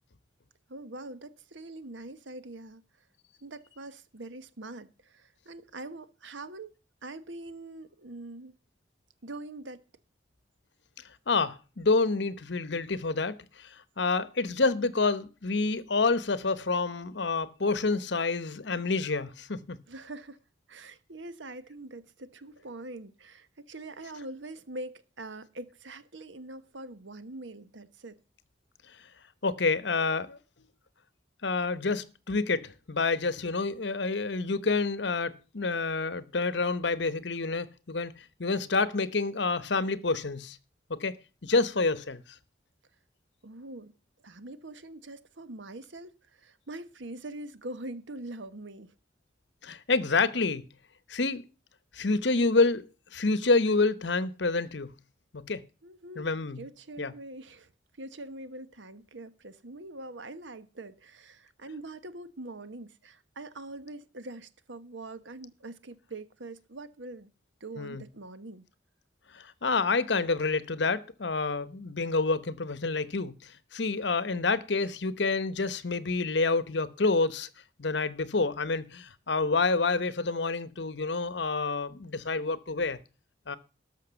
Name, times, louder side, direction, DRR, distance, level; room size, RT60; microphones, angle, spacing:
voice 1, 0.7-2.8 3.4-6.7 7.0-8.5 9.2-9.8 19.9-20.4 20.7-28.2 43.4-43.9 44.2-48.9 55.8-56.3 56.6-57.7 58.0-67.3 67.6-68.7, right 2 dB, 80° right, 1.2 m, -43 dB
voice 2, 11.3-13.7 14.0-19.8 29.4-30.4 31.4-40.6 40.9-41.1 41.4-42.2 49.6-50.6 51.1-51.4 51.9-52.8 53.1-54.9 55.3-55.6 56.2-56.6 57.0-57.1 67.8-68.0 69.3-73.3 73.7-77.5 77.8-83.0 83.5-83.6, left 3 dB, 70° left, 1.0 m, -28 dB
13.0 x 5.9 x 7.0 m
head